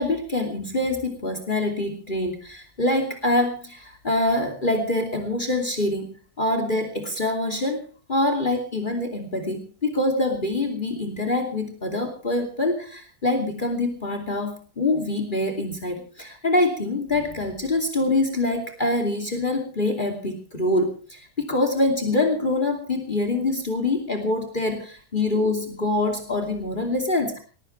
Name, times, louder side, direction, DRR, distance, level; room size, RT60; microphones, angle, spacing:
voice 1, 0.0-6.1 6.4-27.4, left 2 dB, 30° left, 6 dB, 2.9 m, -25 dB
21.5 x 19.0 x 3.3 m, 0.39 s
omnidirectional pair, 1.6 m